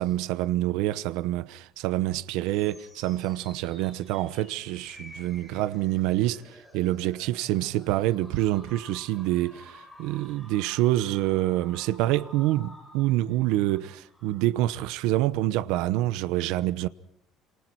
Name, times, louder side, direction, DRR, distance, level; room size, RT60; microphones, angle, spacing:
voice 1, 0.0-16.9, right 15 dB, 85° right, 0.9 m, -27 dB
sound 1, 2.1-14.4, left 1 dB, 5° left, 6.1 m, -51 dB
28.0 x 27.0 x 4.7 m
cardioid pair, 175°, 0 cm